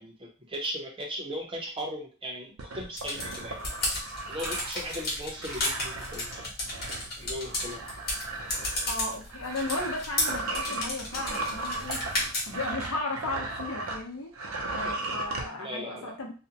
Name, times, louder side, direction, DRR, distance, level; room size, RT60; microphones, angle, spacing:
voice 1, 0.0-3.6 4.3-6.8 7.2-7.9 14.8-15.0 15.6-16.1, equal, 25° right, -1 dB, 0.6 m, -38 dB
sound 1, 2.6-14.0 14.3-15.5, right 2 dB, 85° right, 0.5 m, -36 dB
sound 2, 3.0-12.7, left 1 dB, 45° left, 1.1 m, -33 dB
voice 2, 8.9-12.1 12.5-14.3 14.7-16.3, left 2 dB, 80° left, 1 dB, 0.8 m, -35 dB
2.5 x 2.1 x 2.8 m, 0.35 s
head